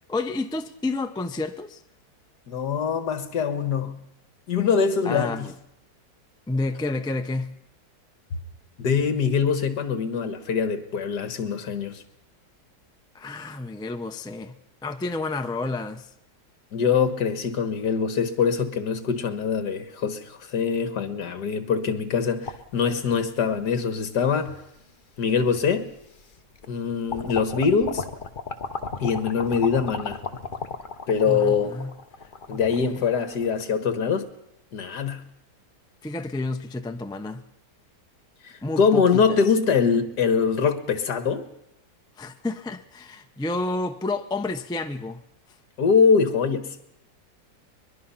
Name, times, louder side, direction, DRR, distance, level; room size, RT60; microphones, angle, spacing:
voice 1, 0.1-1.8 5.0-5.5 6.5-7.6 13.1-14.5 14.8-16.1 31.2-31.9 32.5-32.6 32.9-33.0 36.0-37.4 38.6-39.4 42.2-45.2, left 2 dB, 5° left, 0.3 m, -30 dB
voice 2, 2.5-4.0 4.5-5.5 8.8-12.0 16.7-24.6 25.2-25.9 26.7-28.0 29.0-30.2 31.1-31.8 32.5-34.3 34.7-35.2 38.4-41.5 45.8-46.8, left 6 dB, 70° left, 2.0 m, -23 dB
sound 1, 22.4-23.6 24.4-24.5 25.7-25.8 26.2-26.8 27.1-33.6, left 4 dB, 35° left, 1.0 m, -35 dB
22.0 x 22.0 x 5.7 m
omnidirectional pair, 1.9 m